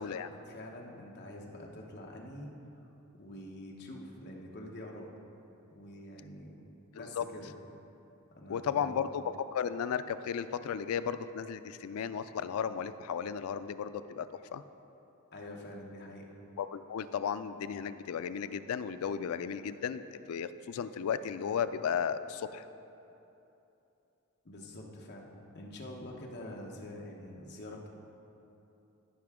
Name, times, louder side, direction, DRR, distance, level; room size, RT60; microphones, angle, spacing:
voice 1, 0.0-2.5 3.1-5.1 5.7-6.6 6.9-7.5 8.4-9.0 15.3-16.3 24.4-27.9, left 1 dB, 50° left, 0 dB, 1.0 m, -46 dB
voice 2, 7.0-7.3 8.5-9.2 9.5-14.6 16.6-22.6, left 7 dB, 75° left, 13 dB, 0.3 m, -35 dB
14.0 x 5.8 x 3.6 m, 2.9 s
head